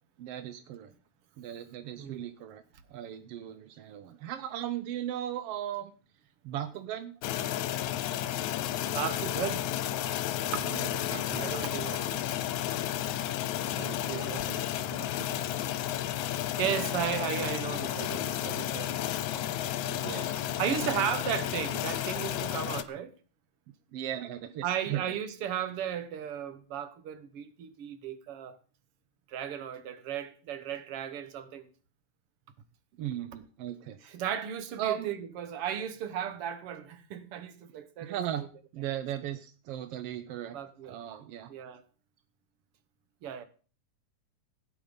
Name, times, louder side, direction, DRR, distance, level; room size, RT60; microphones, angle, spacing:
voice 1, 0.2-0.9 1.4-2.6 2.9-5.9 6.4-7.2 10.6-11.6 13.7-15.5 19.9-20.9 21.3-21.5 23.9-25.1 33.0-34.0 34.8-35.1 38.0-38.5 38.7-40.6 40.8-41.5, right 11 dB, 75° right, 1.4 m, -38 dB
sound 1, 7.2-22.8, left 12 dB, 75° left, 2.1 m, -32 dB
voice 2, 8.9-9.6 10.5-11.0 11.4-12.1 13.8-14.5 16.6-19.0 20.6-23.1 24.6-28.6 29.3-31.7 34.0-38.5 40.5-41.0 41.5-41.8 43.2-43.4, right 9 dB, 60° right, 1.8 m, -35 dB
16.0 x 9.3 x 5.1 m
omnidirectional pair, 3.6 m